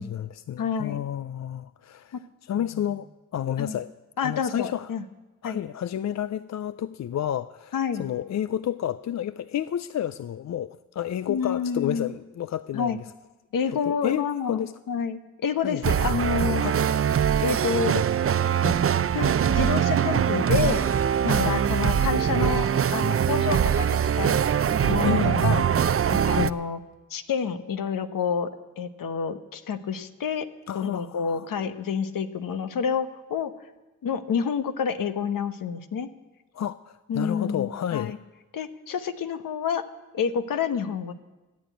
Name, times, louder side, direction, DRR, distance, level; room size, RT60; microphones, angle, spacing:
voice 1, 0.0-3.1 3.3-3.9 4.2-4.9 5.4-13.0 13.7-14.7 15.6-15.9 16.6-16.8 18.5-18.8 21.3-21.6 24.8-25.7 26.2-26.5 30.7-31.5 36.5-38.2, left 10 dB, 50° left, 0.5 m, -31 dB
voice 2, 0.6-1.0 2.1-2.2 2.6-2.8 3.6-3.8 4.2-5.0 5.4-5.6 7.7-8.1 11.3-12.1 12.7-13.0 13.5-16.6 17.4-18.3 19.1-20.9 21.2-22.7 22.9-24.4 24.8-25.6 26.1-26.8 27.1-30.5 30.7-33.5 34.0-36.1 37.1-38.2 38.5-39.8 40.1-41.1, left 6 dB, 65° left, 1.1 m, -28 dB
sound 1, 15.8-26.5, right 8 dB, 40° right, 0.6 m, -23 dB
14.5 x 8.6 x 9.1 m
supercardioid pair, 50°, 35 cm